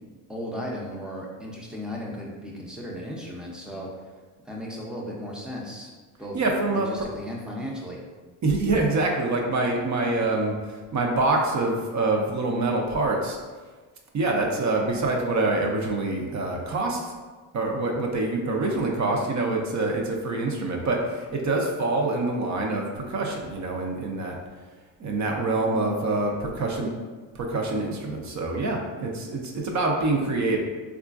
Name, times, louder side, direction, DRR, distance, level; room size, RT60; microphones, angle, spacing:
voice 1, 0.3-3.9 4.4-5.9 6.2-6.4 6.7-8.0, equal, ahead, -3 dB, 0.6 m, -35 dB
voice 2, 6.3-6.9 8.4-13.4 14.1-17.1 17.5-24.4 25.0-26.9 27.3-30.6, right 2 dB, 40° right, 1 dB, 0.6 m, -25 dB
3.6 x 2.4 x 2.4 m, 1.4 s
cardioid pair, 90°, 43 cm